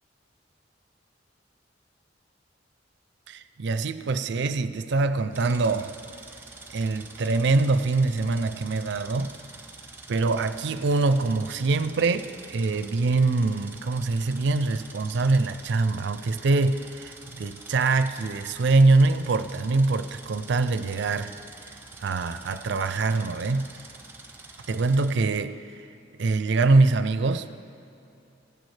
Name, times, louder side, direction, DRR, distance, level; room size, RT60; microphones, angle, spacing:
voice 1, 3.3-5.9 6.7-9.3 10.1-21.3 22.0-23.7 24.7-25.6 26.2-27.5, right 3 dB, 65° right, 11 dB, 0.4 m, -24 dB
sound 1, 5.3-25.1, right 3 dB, 10° right, 0.9 m, -46 dB
16.5 x 10.5 x 3.3 m, 2.7 s
head